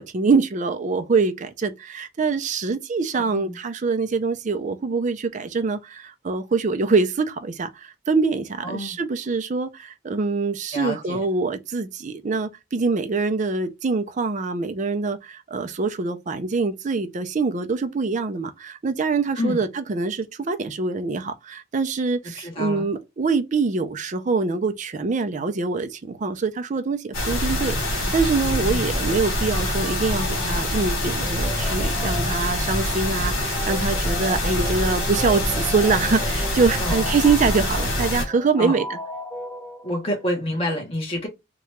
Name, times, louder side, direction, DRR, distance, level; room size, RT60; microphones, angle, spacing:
voice 1, 0.0-39.0, right 4 dB, 35° right, 0.4 m, -24 dB
voice 2, 3.1-3.5 8.6-9.0 10.7-11.2 19.4-19.6 22.3-22.9 28.7-28.8 36.8-37.0 38.6-38.8 39.8-41.3, left 1 dB, 30° left, 1.0 m, -28 dB
sound 1, 27.1-38.2, left 1 dB, 80° left, 1.6 m, -25 dB
sound 2, 29.5-40.3, left 2 dB, 10° left, 0.6 m, -37 dB
2.8 x 2.3 x 3.0 m
head